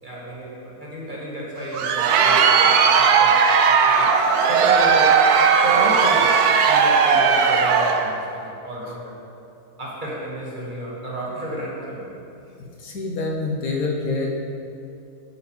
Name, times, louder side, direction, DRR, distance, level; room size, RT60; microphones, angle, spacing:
voice 1, 0.0-4.2 4.5-5.3 5.6-9.2 9.8-12.0, right 1 dB, 30° right, -5 dB, 1.5 m, -31 dB
Crowd, 1.6-8.1, right 6 dB, 75° right, 1.1 m, -17 dB
voice 2, 12.8-14.4, left 3 dB, 65° left, -1 dB, 1.3 m, -26 dB
11.5 x 5.1 x 3.2 m, 2.7 s
omnidirectional pair, 1.7 m